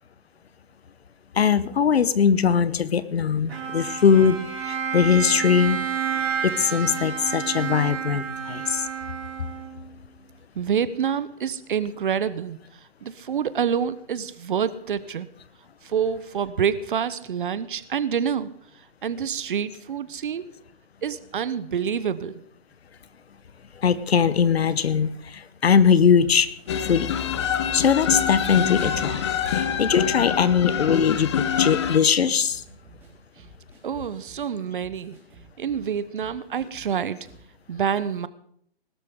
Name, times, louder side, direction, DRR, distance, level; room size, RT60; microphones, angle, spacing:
voice 1, 1.3-5.8 6.4-8.9 23.8-26.5 26.9-27.1 27.7-29.2 29.5-32.6, left 7 dB, 70° left, 16 dB, 1.1 m, -21 dB
Bowed string instrument, 3.5-9.9, right 7 dB, 75° right, 3.8 m, -30 dB
voice 2, 10.5-12.6 13.0-15.3 15.8-18.5 19.0-20.5 21.0-22.3 33.8-35.2 35.6-37.3 37.7-38.3, right 7 dB, 55° right, 15 dB, 1.0 m, -27 dB
sound 1, 26.3-27.4 28.1-28.9 29.1-30.3 30.5-31.3 31.6-31.7 31.9-35.9 36.2-36.9 37.2-37.5, right 4 dB, 5° right, 4.1 m, -51 dB
sound 2, 26.7-32.0, left 8 dB, 25° left, 0.8 m, -25 dB
20.5 x 12.5 x 3.8 m, 0.63 s
hypercardioid pair, 155°, 32 cm